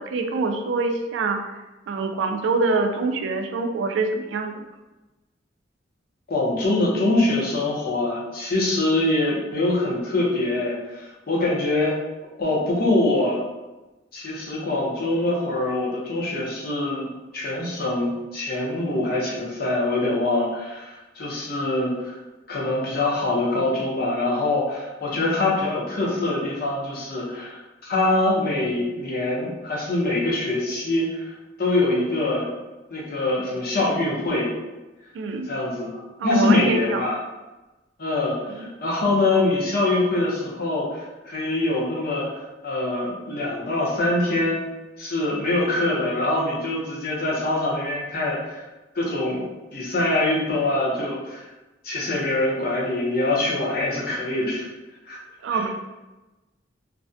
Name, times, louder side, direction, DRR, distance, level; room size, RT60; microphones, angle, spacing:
voice 1, 0.0-1.4 1.9-4.7 35.1-35.5 36.2-37.1 38.6-38.7 55.4-55.7, right 3 dB, 80° right, 5 dB, 0.3 m, -25 dB
voice 2, 6.3-11.9 12.4-13.4 14.1-22.2 22.5-31.3 31.6-32.5 32.9-34.5 35.5-37.2 38.0-44.6 45.0-48.7 48.9-49.5 49.7-51.5 51.8-54.7 55.1-55.2 55.5-55.7, left 2 dB, 55° left, -4 dB, 0.6 m, -24 dB
2.4 x 2.1 x 2.6 m, 1.1 s
head